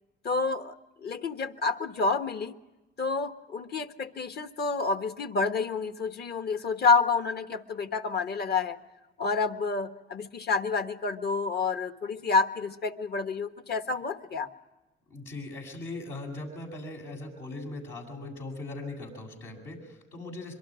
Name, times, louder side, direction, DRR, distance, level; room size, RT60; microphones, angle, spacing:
voice 1, 0.2-0.7 1.0-2.5 3.0-8.8 9.2-14.5, left 4 dB, 55° left, 8 dB, 1.4 m, -29 dB
voice 2, 15.1-20.5, left 2 dB, 80° left, 0 dB, 7.7 m, -39 dB
26.0 x 23.5 x 5.0 m, 1.1 s
cardioid pair, 90°, 20 cm